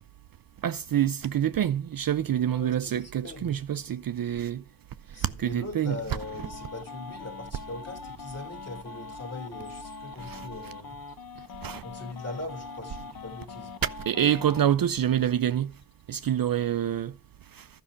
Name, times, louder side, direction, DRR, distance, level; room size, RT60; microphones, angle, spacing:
voice 1, 0.6-4.6 5.2-6.0 10.2-10.5 11.6-11.8 14.1-15.7 16.1-17.1 17.5-17.7, right 10 dB, 55° right, 0.5 m, -26 dB
voice 2, 2.5-3.6 5.1-11.0 11.8-13.7, left 2 dB, 35° left, 2.6 m, -40 dB
sound 1, 6.2-14.7, left 4 dB, 55° left, 0.8 m, -42 dB
sound 2, 9.6-11.6 15.6-17.0, left 4 dB, 85° left, 3.1 m, -60 dB
12.5 x 5.6 x 5.0 m
wide cardioid pair, 95°, 43 cm